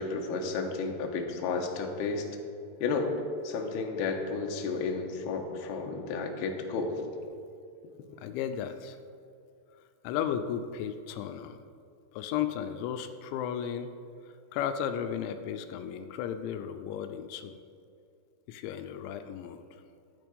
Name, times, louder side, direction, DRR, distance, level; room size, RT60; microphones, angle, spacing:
voice 1, 0.0-2.3 2.8-3.1 3.4-7.0, left 4 dB, 75° left, 3 dB, 2.8 m, -32 dB
voice 2, 8.2-9.0 10.0-11.6 12.1-13.9 14.5-17.6 18.5-19.6, left 9 dB, 90° left, 9 dB, 2.9 m, -34 dB
12.0 x 8.7 x 5.3 m, 2.4 s
omnidirectional pair, 5.1 m